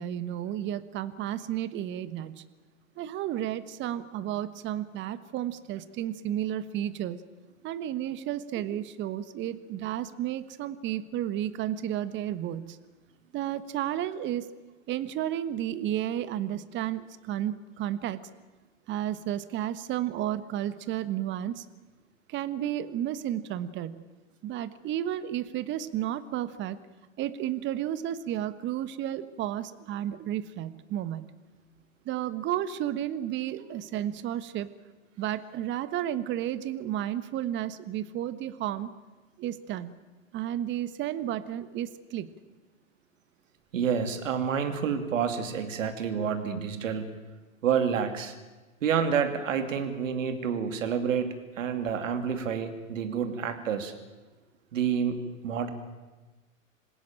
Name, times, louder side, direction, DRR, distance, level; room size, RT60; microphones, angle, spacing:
voice 1, 0.0-2.4 3.0-7.2 7.6-12.8 13.3-14.5 14.9-18.2 18.9-21.6 22.3-24.0 24.4-26.8 27.2-31.3 32.0-34.7 35.2-38.9 39.4-39.9 40.3-42.3, right 11 dB, 30° right, 14 dB, 1.3 m, -32 dB
voice 2, 43.7-47.1 47.6-48.3 48.8-53.9 54.7-55.7, right 7 dB, 70° right, 8 dB, 2.8 m, -29 dB
27.0 x 16.5 x 8.9 m, 1.2 s
hypercardioid pair, 120°, 40 cm